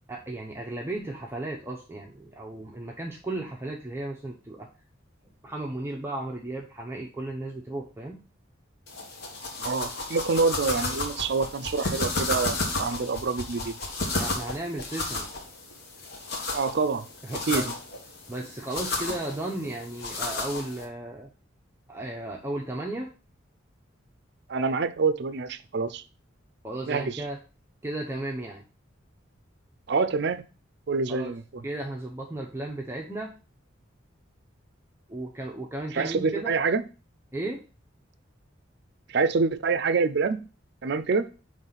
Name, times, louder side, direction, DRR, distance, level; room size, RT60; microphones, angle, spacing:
voice 1, 0.1-4.7 5.4-8.2 14.2-15.3 17.2-17.7 18.3-21.3 21.9-23.1 26.6-27.4 27.8-28.6 31.1-31.3 31.6-33.3 35.1-36.5 37.3-37.6, right 2 dB, 10° right, -1 dB, 0.6 m, -35 dB
sound 1, 8.9-20.8, left 2 dB, 55° left, 1.1 m, -33 dB
voice 2, 9.6-13.7 16.5-17.0 17.5-17.7 19.1-19.2 24.5-26.0 26.9-27.2 29.9-30.4 30.9-31.6 35.9-36.8 39.1-40.4 40.8-41.3, right 4 dB, 55° right, 14 dB, 0.5 m, -26 dB
5.5 x 3.2 x 5.6 m, 0.34 s
head